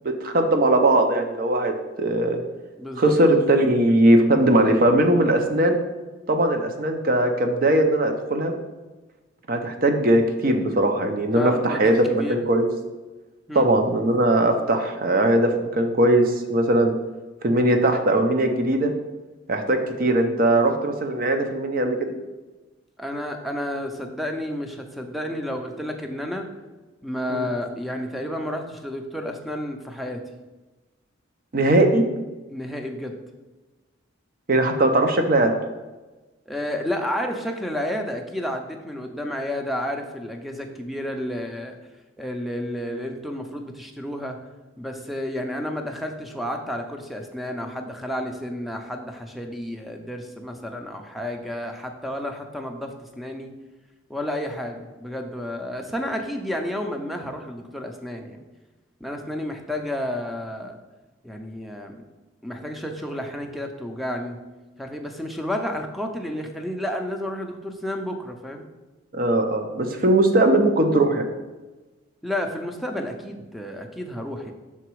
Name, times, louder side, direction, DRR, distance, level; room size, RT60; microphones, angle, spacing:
voice 1, 0.2-2.4 3.0-5.8 6.3-8.5 9.5-12.7 13.5-16.9 17.4-18.9 19.5-22.1 27.3-27.5 31.5-32.0 34.5-35.5 69.1-71.3, right 1 dB, 50° right, 5 dB, 0.7 m, -20 dB
voice 2, 2.8-3.2 11.3-12.4 13.5-13.7 23.0-26.5 27.0-30.2 32.5-33.2 36.5-41.8 42.2-44.4 44.8-53.5 54.1-58.4 59.0-60.8 61.2-62.0 62.4-64.4 64.8-68.6 72.2-74.5, left 1 dB, ahead, 4 dB, 0.5 m, -31 dB
5.9 x 4.0 x 4.6 m, 1.2 s
head